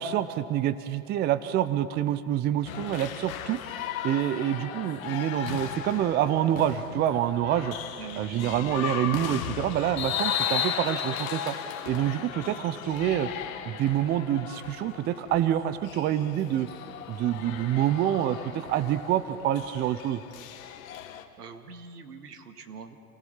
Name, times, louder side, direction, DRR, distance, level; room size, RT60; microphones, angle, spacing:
voice 1, 0.0-3.6 4.0-7.8 8.2-11.6 11.9-13.3 13.6-16.7 17.1-20.2, right 11 dB, 20° right, 13 dB, 0.6 m, -27 dB
sound 1, 2.7-21.2, left 9 dB, 60° left, 1.8 m, -36 dB
voice 2, 8.0-8.8 21.4-23.0, right 7 dB, 75° right, 7 dB, 1.9 m, -43 dB
28.0 x 18.0 x 5.7 m, 2.6 s
figure-of-eight pair, 100°, 47 cm